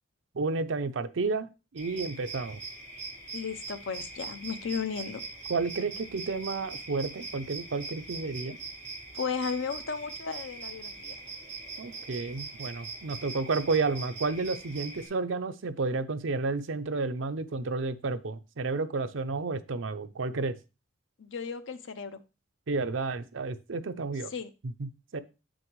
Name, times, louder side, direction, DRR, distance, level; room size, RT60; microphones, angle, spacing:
voice 1, 0.3-1.5 1.7-2.6 5.5-8.6 11.8-20.5 22.7-24.3 24.6-25.2, right 3 dB, 80° right, 11 dB, 0.6 m, -31 dB
sound 1, 1.8-15.1, right 3 dB, 35° right, 2.8 m, -42 dB
voice 2, 3.3-5.2 9.1-11.1 21.2-22.2 24.3-24.5, left 5 dB, 75° left, 11 dB, 0.7 m, -34 dB
7.1 x 6.3 x 3.1 m, 0.29 s
head